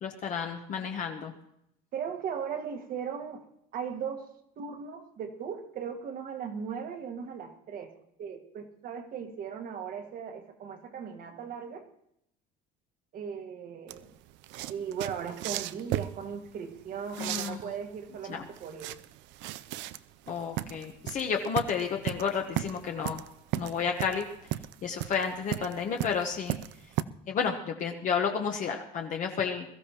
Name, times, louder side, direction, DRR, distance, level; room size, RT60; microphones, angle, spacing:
voice 1, 0.0-1.3 17.2-17.6 18.3-18.4 20.3-23.2 23.6-24.3 24.8-26.6 27.3-29.6, left 6 dB, 40° left, 3 dB, 1.0 m, -31 dB
voice 2, 1.9-3.4 3.7-4.3 4.6-7.9 8.2-11.8 13.1-14.1 14.7-18.9 21.4-21.5, right 7 dB, 45° right, 6 dB, 1.5 m, -38 dB
sound 1, 13.9-27.0, right 15 dB, 70° right, 0.5 m, -36 dB
22.0 x 14.0 x 2.9 m, 0.77 s
cardioid pair, 150°, 19 cm